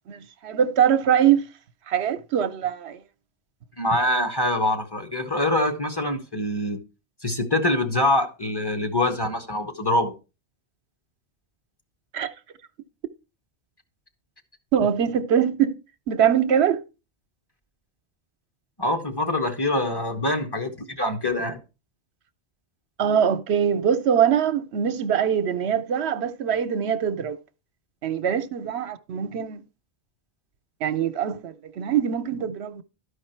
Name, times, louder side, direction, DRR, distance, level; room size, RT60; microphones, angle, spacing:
voice 1, 0.1-1.5 1.9-3.0 12.1-12.3 14.7-15.8 16.1-16.8 23.0-27.4 28.0-29.6 30.8-32.8, right 8 dB, 80° right, 0.9 m, -23 dB
voice 2, 3.8-6.8 7.2-10.1 18.8-21.6, left 1 dB, 25° left, 1.1 m, -24 dB
12.5 x 5.0 x 4.4 m
omnidirectional pair, 1.1 m